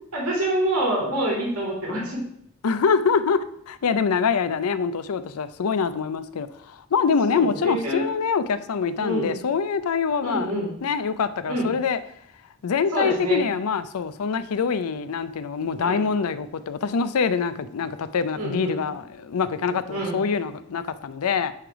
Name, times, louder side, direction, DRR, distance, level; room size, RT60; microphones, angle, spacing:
voice 1, 0.1-2.2 7.3-8.1 9.0-9.4 10.2-10.7 11.5-11.7 12.9-13.4 15.8-16.0 18.3-18.8 19.9-20.1, right 1 dB, 80° right, -3 dB, 2.2 m, -26 dB
voice 2, 2.6-10.5 10.8-12.0 12.6-21.5, left 5 dB, 80° left, 14 dB, 0.5 m, -25 dB
9.8 x 3.4 x 4.6 m, 0.72 s
head